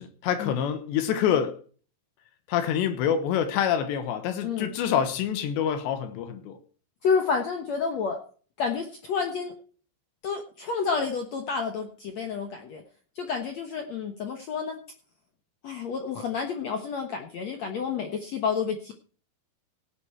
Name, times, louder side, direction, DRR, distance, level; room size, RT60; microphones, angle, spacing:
voice 1, 0.0-1.6 2.5-6.6, left 9 dB, 85° left, 3.5 m, -26 dB
voice 2, 7.0-8.2 8.6-9.5 10.2-12.8 13.1-14.8 15.6-18.9, left 5 dB, 70° left, 1.6 m, -29 dB
17.5 x 8.2 x 4.4 m
omnidirectional pair, 4.9 m